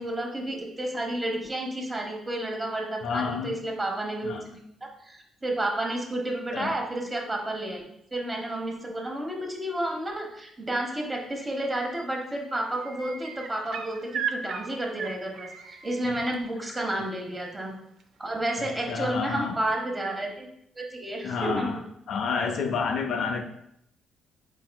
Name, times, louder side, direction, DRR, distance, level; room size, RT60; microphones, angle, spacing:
voice 1, 0.0-4.6 5.0-7.8 8.1-17.7 18.2-20.5 20.7-21.9, right 1 dB, 20° right, 0 dB, 1.0 m, -31 dB
voice 2, 3.0-3.5 4.2-4.4 6.5-6.7 16.9-17.0 18.6-19.6 21.2-21.8 22.1-23.4, left 5 dB, 65° left, 5 dB, 0.5 m, -29 dB
sound 1, 11.6-12.0 12.3-16.3 18.0-18.1, right 7 dB, 70° right, 0.4 m, -36 dB
4.5 x 4.3 x 2.2 m, 0.76 s
cardioid pair, 90°, 0 cm